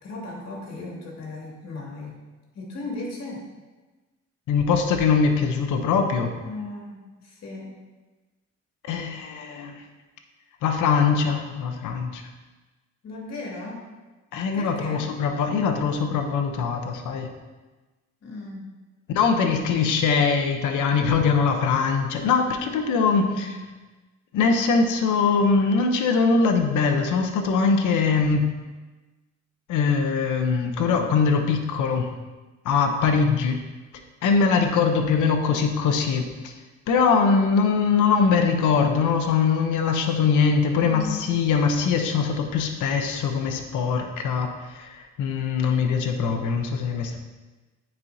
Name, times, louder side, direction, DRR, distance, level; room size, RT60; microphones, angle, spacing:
voice 1, 0.0-2.2 2.5-3.5 6.4-7.8 13.0-13.9 14.5-15.1 18.2-18.7 23.2-23.6 40.7-41.4, left 2 dB, 60° left, -2 dB, 2.1 m, -36 dB
voice 2, 4.5-6.3 8.8-9.8 10.6-12.2 14.3-17.3 19.1-23.5 24.3-28.5 29.7-32.1 32.6-33.6 34.2-36.5 36.9-47.2, left 5 dB, 80° left, 4 dB, 0.8 m, -22 dB
9.5 x 4.5 x 2.7 m, 1.2 s
cardioid pair, 90°, 30 cm